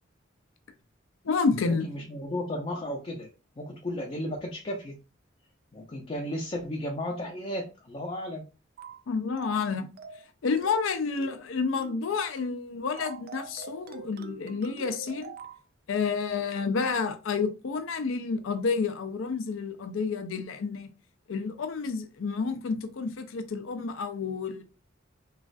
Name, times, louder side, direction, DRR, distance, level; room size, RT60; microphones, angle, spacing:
voice 1, 1.2-1.9 9.1-9.9 10.4-15.3 15.9-20.9 21.3-24.6, left 5 dB, 90° left, 0.5 m, -30 dB
voice 2, 1.8-3.3 3.6-5.0 5.7-8.4, left 1 dB, 30° left, 0.5 m, -34 dB
sound 1, 8.8-9.0 9.4-9.7 10.0-10.3 10.6-10.9 11.2-11.5 11.8-12.0 12.4-12.6 13.0-15.6, right 4 dB, 50° right, 0.3 m, -44 dB
3.1 x 2.4 x 2.5 m
head